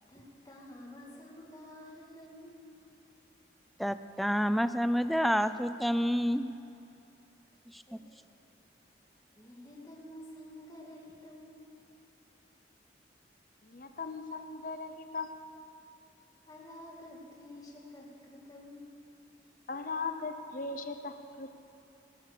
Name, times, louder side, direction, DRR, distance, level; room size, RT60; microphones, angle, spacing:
voice 1, 0.1-2.8 7.9-8.4 9.4-11.7 16.4-19.0 19.4-19.5, left 1 dB, 20° left, -3 dB, 2.3 m, -50 dB
voice 2, 3.8-6.6 7.7-7.8, equal, ahead, 12 dB, 0.3 m, -28 dB
voice 3, 13.6-15.3 19.7-21.5, left 4 dB, 50° left, 7 dB, 0.7 m, -38 dB
19.5 x 9.5 x 6.8 m, 2.7 s
head